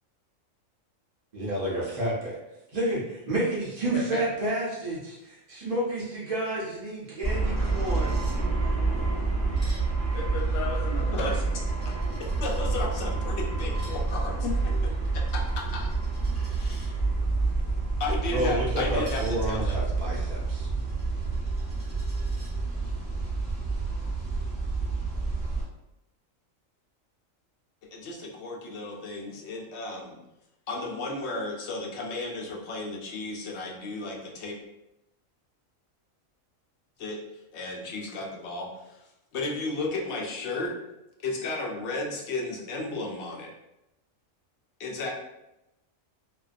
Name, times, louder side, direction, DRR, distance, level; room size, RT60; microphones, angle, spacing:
voice 1, 1.3-2.4 2.7-3.0 3.3-5.1 5.5-8.1 18.3-20.7, right 1 dB, 60° right, -6 dB, 0.3 m, -30 dB
voice 2, 3.9-4.2 8.6-8.7 10.1-11.4 14.4-14.8, left 4 dB, 85° left, -1 dB, 1.0 m, -34 dB
Coin (dropping), 5.9-6.1 6.4-6.5 6.7-8.4 9.3-12.6 13.6-16.9 19.0-22.5, right 1 dB, 20° left, 1.1 m, -53 dB
sound 1, 7.2-25.6, right 3 dB, 10° right, 1.1 m, -28 dB
voice 3, 11.1-11.4 11.8-11.9 12.2-14.5 15.1-15.9 16.6-17.0 18.0-19.7 27.8-30.2 30.7-34.6 37.0-37.2 37.5-40.7 41.2-43.5 44.8-45.1, left 2 dB, 65° left, -1 dB, 0.8 m, -34 dB
2.5 x 2.2 x 2.4 m, 0.91 s
omnidirectional pair, 1.4 m